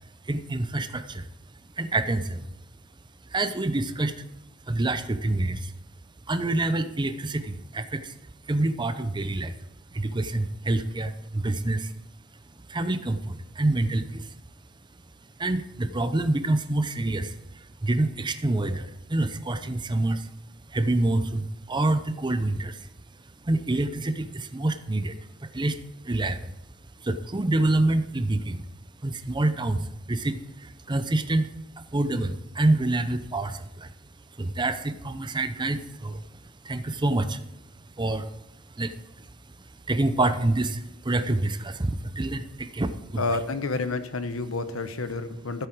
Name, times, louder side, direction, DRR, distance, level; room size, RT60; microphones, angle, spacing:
voice 1, 0.2-1.3 1.8-2.5 3.2-4.2 4.7-5.7 6.3-8.2 8.4-9.6 9.9-11.9 12.7-14.3 15.4-20.3 20.7-22.9 23.4-26.5 27.0-28.7 29.0-37.4 37.7-43.4, right 2 dB, 20° right, 11 dB, 0.7 m, -27 dB
voice 2, 43.2-45.7, left 3 dB, 80° left, 10 dB, 1.0 m, -29 dB
14.0 x 8.1 x 4.6 m, 0.88 s
head